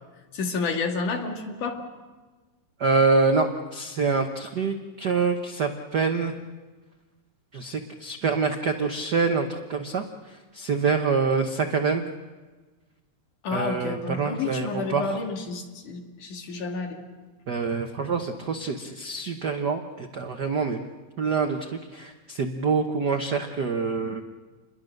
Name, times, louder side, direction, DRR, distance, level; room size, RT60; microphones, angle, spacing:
voice 1, 0.3-1.8 13.4-17.0, left 4 dB, 80° left, 2 dB, 3.8 m, -30 dB
voice 2, 2.8-6.3 7.5-10.0 10.5-12.0 13.5-15.2 17.5-20.8 21.2-24.2, right 4 dB, 85° right, 5 dB, 0.9 m, -26 dB
28.5 x 21.5 x 6.5 m, 1.3 s
omnidirectional pair, 3.6 m